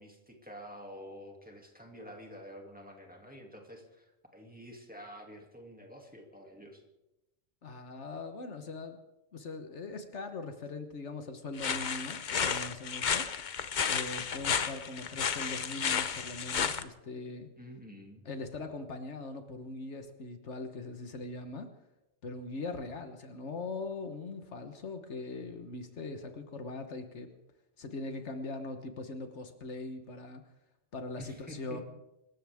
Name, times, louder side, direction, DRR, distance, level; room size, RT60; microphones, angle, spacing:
voice 1, 0.0-6.8 17.6-18.3 31.2-31.8, equal, 5° right, 1 dB, 2.5 m, -48 dB
voice 2, 7.6-9.0 9.3-13.5 13.9-17.5 18.2-21.7 22.2-27.3 27.8-30.4 30.9-31.8, left 3 dB, 70° left, 7 dB, 1.5 m, -41 dB
sound 1, 11.6-16.8, left 7 dB, 45° left, 0.8 m, -32 dB
25.5 x 14.0 x 3.6 m, 0.95 s
omnidirectional pair, 1.2 m